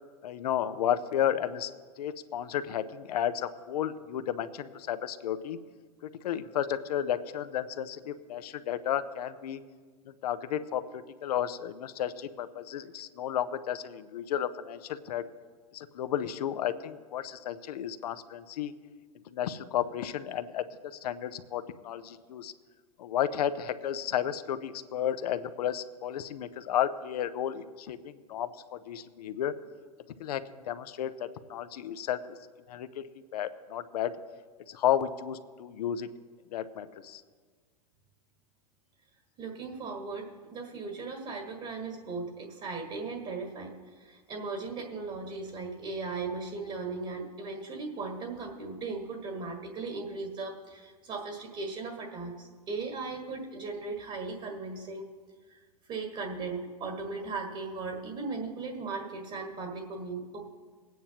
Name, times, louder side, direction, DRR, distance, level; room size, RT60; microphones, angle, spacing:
voice 1, 0.2-1.7 2.0-5.6 6.2-9.6 10.2-15.2 15.7-18.7 19.3-20.6 21.0-22.5 23.0-28.5 28.9-29.5 30.2-32.4 32.7-33.0 33.3-34.1 34.7-36.1 36.5-37.2, left 10 dB, 70° left, 11 dB, 0.7 m, -32 dB
voice 2, 39.4-55.1 55.5-55.6 55.9-60.5, right 3 dB, 35° right, 1 dB, 1.8 m, -37 dB
21.0 x 9.2 x 2.9 m, 1.5 s
hypercardioid pair, 105°, 21 cm